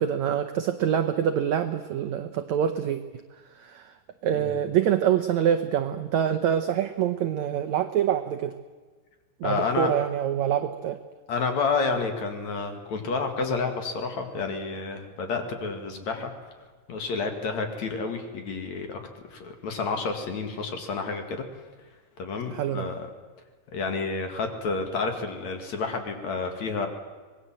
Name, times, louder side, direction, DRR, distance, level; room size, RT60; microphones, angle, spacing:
voice 1, 0.0-3.0 3.6-3.8 4.2-8.5 9.4-11.0 22.5-22.9, right 9 dB, 80° right, 8 dB, 1.6 m, -25 dB
voice 2, 9.4-9.9 11.3-16.3 16.9-19.0 19.3-21.4 22.2-23.1 23.7-26.9, left 4 dB, 50° left, 5 dB, 3.1 m, -30 dB
25.5 x 20.5 x 7.7 m, 1.4 s
omnidirectional pair, 4.4 m